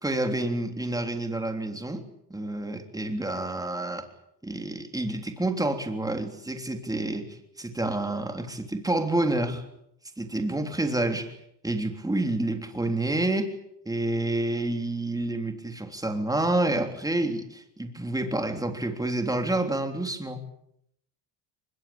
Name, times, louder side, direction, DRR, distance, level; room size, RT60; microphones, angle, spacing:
voice 1, 0.0-2.0 2.3-4.1 4.4-9.6 10.2-11.4 11.6-13.5 13.9-20.4, right 2 dB, 10° right, 5 dB, 3.4 m, -28 dB
24.0 x 22.5 x 8.5 m, 0.75 s
cardioid pair, 130°, 46 cm